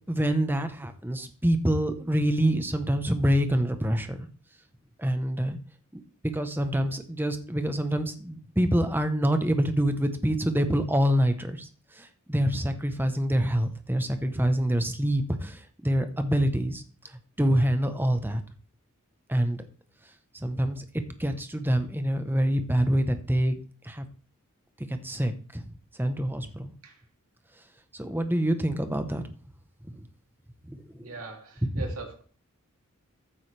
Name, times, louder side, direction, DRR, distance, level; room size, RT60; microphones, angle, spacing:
voice 1, 0.1-4.3 5.0-5.6 6.2-11.7 11.9-16.8 17.4-18.4 19.3-19.6 20.3-20.8 21.2-24.1 24.9-25.7 26.0-26.7 27.9-29.2 29.9-30.1 30.7-31.1 31.7-31.8, equal, 10° right, 8 dB, 1.0 m, -26 dB
voice 2, 31.0-32.2, right 3 dB, 80° right, 2 dB, 2.7 m, -41 dB
14.5 x 8.8 x 3.4 m, 0.41 s
head